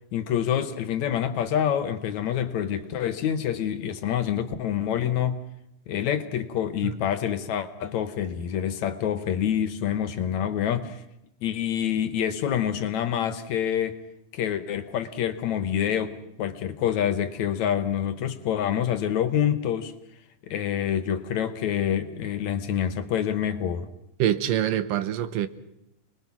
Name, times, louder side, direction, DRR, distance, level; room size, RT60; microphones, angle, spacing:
voice 1, 0.1-5.4 5.9-11.0 11.4-14.0 14.3-19.9 20.5-23.9, left 9 dB, 65° left, 2.1 m, -27 dB
voice 2, 24.2-25.5, right 11 dB, 85° right, 2.7 m, -25 dB
29.5 x 20.5 x 6.0 m
omnidirectional pair, 3.8 m